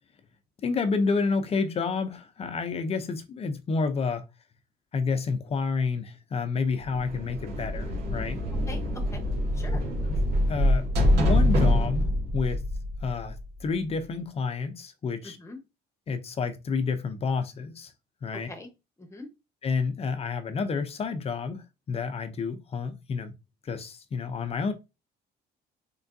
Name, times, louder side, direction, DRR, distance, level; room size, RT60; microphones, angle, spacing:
voice 1, 0.6-4.2 4.9-8.4 10.1-10.2 10.5-10.9 11.1-12.6 13.0-13.4 13.6-15.4 16.1-17.9 18.2-18.5 19.6-23.3 23.6-24.7, left 4 dB, 35° left, 0.6 m, -29 dB
sound 1, 6.8-13.6, left 1 dB, 80° right, 1.8 m, -25 dB
voice 2, 8.7-9.2 9.5-9.8 15.2-15.6 18.5-18.7 19.0-19.3, left 2 dB, 15° left, 1.0 m, -42 dB
3.7 x 3.3 x 2.6 m
cardioid pair, 110°, 17 cm